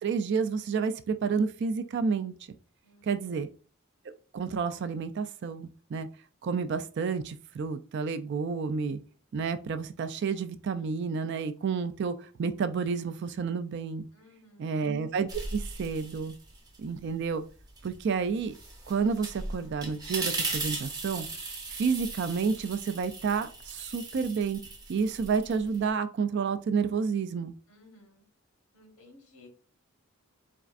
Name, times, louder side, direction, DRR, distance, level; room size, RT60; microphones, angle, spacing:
voice 1, 0.0-2.3 3.0-3.5 4.3-6.1 6.4-9.0 9.3-14.1 14.6-16.3 16.8-17.4 17.8-18.5 18.9-21.3 21.7-24.6 24.9-27.6, right 5 dB, 55° right, 0.3 m, -30 dB
voice 2, 2.8-3.4 14.1-14.8 27.7-28.2 28.7-29.5, left 2 dB, 85° left, 1.1 m, -57 dB
sound 1, 15.3-16.8 17.2-25.9, right 3 dB, 20° right, 0.6 m, -38 dB
4.3 x 2.5 x 2.4 m
head